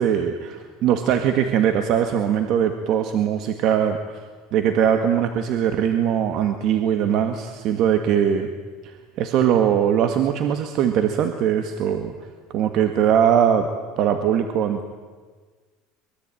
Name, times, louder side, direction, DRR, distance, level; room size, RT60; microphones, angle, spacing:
voice 1, 0.0-4.2 4.5-8.5 8.8-12.1 12.5-13.7 14.0-14.9, right 9 dB, 50° right, 7 dB, 1.9 m, -21 dB
24.0 x 22.5 x 9.2 m, 1.4 s
cardioid pair, 140°, 0 cm